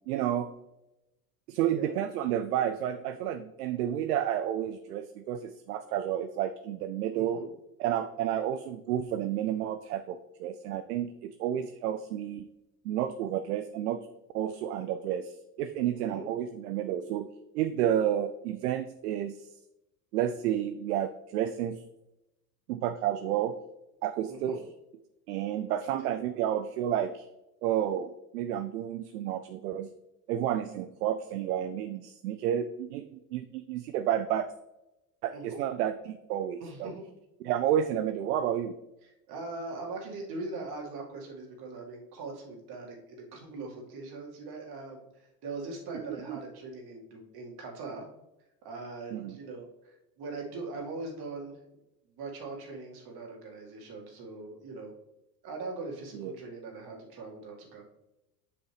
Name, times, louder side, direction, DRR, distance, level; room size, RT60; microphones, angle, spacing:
voice 1, 0.1-0.5 1.5-7.4 7.8-12.5 12.8-14.0 14.3-17.3 17.5-19.5 20.1-21.8 22.7-23.5 24.0-24.6 25.3-27.3 27.6-29.9 30.3-34.5 35.2-36.9 37.4-38.7 45.9-46.0 46.3-46.4 49.1-49.4 56.1-56.3, right 10 dB, 75° right, 9 dB, 0.6 m, -31 dB
voice 2, 7.1-7.5 16.0-16.2 24.3-24.6 26.0-26.2 35.3-35.6 36.6-37.0 39.0-45.1 45.4-48.0 48.6-51.6 52.2-54.9 55.4-57.9, right 3 dB, 50° right, 0 dB, 2.2 m, -41 dB
7.8 x 6.0 x 3.3 m, 0.93 s
hypercardioid pair, 80°, 47 cm